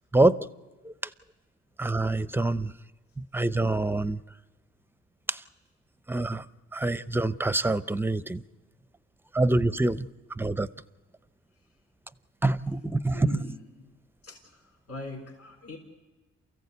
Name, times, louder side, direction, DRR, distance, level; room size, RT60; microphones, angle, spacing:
voice 1, 0.1-0.5 0.8-0.9 1.8-2.7 3.2-4.2 5.3-5.4 6.1-6.4 6.7-8.4 9.3-10.1 10.4-10.7 12.4-13.4, right 2 dB, 5° right, 15 dB, 0.7 m, -25 dB
voice 2, 13.1-13.9 14.2-14.6 14.9-15.8, left 3 dB, 65° left, -1 dB, 4.0 m, -41 dB
28.0 x 15.0 x 8.3 m, 1.3 s
cardioid pair, 90°, 30 cm